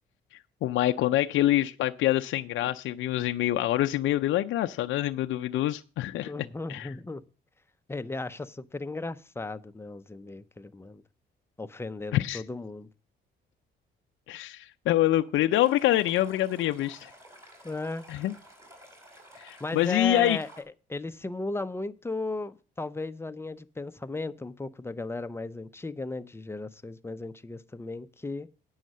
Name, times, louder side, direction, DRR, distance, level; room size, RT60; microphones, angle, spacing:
voice 1, 0.6-6.3 6.7-6.9 12.1-12.4 14.3-17.1 18.1-18.3 19.4-20.4, left 14 dB, 80° left, 0.5 m, -26 dB
voice 2, 6.2-7.2 7.9-11.0 11.6-12.9 17.6-18.0 19.6-20.5 20.9-28.5, left 2 dB, 10° left, 0.7 m, -35 dB
Stream, 15.5-20.6, equal, 15° right, 4.6 m, -52 dB
9.2 x 6.4 x 7.6 m
cardioid pair, 90°, 20 cm